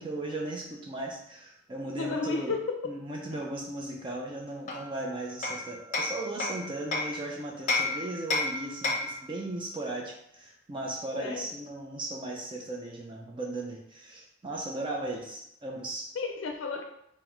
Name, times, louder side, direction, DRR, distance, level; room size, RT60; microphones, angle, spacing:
voice 1, 0.0-2.5 2.8-16.1, right 2 dB, 25° right, 0 dB, 0.5 m, -37 dB
voice 2, 2.0-2.8 11.2-11.5 16.1-16.8, left 4 dB, 85° left, 3 dB, 0.4 m, -32 dB
Hammer, 4.7-7.2 7.7-9.2, left 2 dB, 40° left, 0.6 m, -31 dB
3.9 x 2.1 x 4.4 m, 0.76 s
head